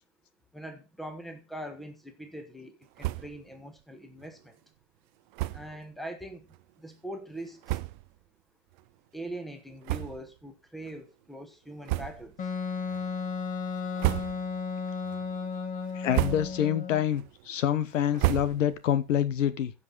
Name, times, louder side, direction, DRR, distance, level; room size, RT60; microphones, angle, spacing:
voice 1, 0.5-4.5 5.5-6.5 6.8-7.8 9.1-12.3, right 1 dB, ahead, 1.3 m, -42 dB
sound 1, 3.0-3.5 3.8-3.9 4.2-4.3 5.3-5.8 6.5-6.6 7.3-7.4 7.6-8.2 8.7-8.9 9.8-10.5 10.8-11.0 11.8-12.4 12.9-13.3 13.8-14.7 15.1-15.5 15.9-16.7 17.1-18.9, right 19 dB, 40° right, 0.6 m, -32 dB
Wind instrument woodwind instrument, 12.4-17.0, left 5 dB, 20° left, 1.4 m, -34 dB
voice 2, 15.9-19.7, left 10 dB, 70° left, 1.2 m, -27 dB
15.0 x 5.5 x 4.0 m
hypercardioid pair, 130°, 39 cm